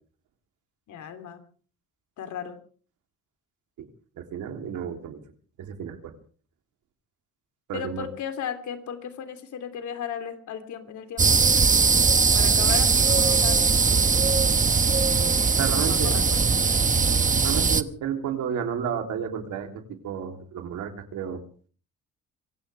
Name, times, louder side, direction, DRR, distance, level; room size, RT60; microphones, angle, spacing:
voice 1, 0.9-1.4 2.2-2.6 7.7-11.4 12.3-14.4 15.7-16.4, left 8 dB, 75° left, 7 dB, 3.2 m, -36 dB
voice 2, 4.2-5.2 5.6-6.1 7.7-8.1 15.6-16.1 17.4-19.7 20.0-21.4, right 8 dB, 85° right, 4 dB, 3.4 m, -31 dB
sound 1, 11.2-17.8, right 5 dB, 25° right, 1.1 m, -20 dB
24.5 x 16.5 x 3.5 m, 0.42 s
cardioid pair, 90°, 30 cm